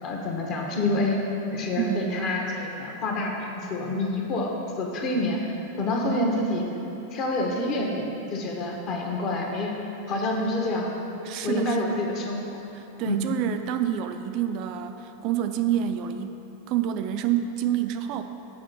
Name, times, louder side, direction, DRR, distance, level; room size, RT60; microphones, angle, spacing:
voice 1, 0.0-1.2 1.5-5.4 5.8-6.6 7.1-9.7 10.1-10.9 11.4-12.6 13.0-13.3, left 2 dB, 40° left, 0 dB, 1.2 m, -27 dB
voice 2, 1.8-2.2 6.0-6.3 11.2-12.0 12.7-16.4 16.7-18.2, right 10 dB, 40° right, 8 dB, 0.4 m, -28 dB
7.6 x 5.0 x 5.8 m, 2.9 s
figure-of-eight pair, 90°, 0 cm